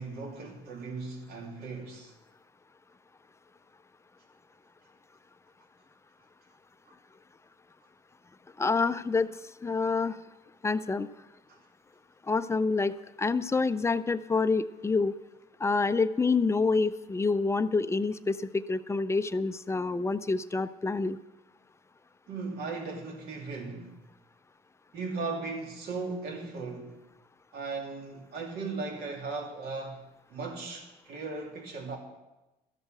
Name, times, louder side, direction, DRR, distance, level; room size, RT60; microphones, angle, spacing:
voice 1, 0.0-2.1 11.5-11.6 22.3-24.0 24.9-27.0 27.5-30.0 30.3-32.0, right 3 dB, 70° right, 2.7 m, -37 dB
voice 2, 8.6-9.3 9.6-10.2 10.6-11.1 12.3-15.2 15.6-21.2, left 4 dB, 15° left, 0.5 m, -27 dB
13.5 x 8.0 x 6.6 m
cardioid pair, 110°, 17 cm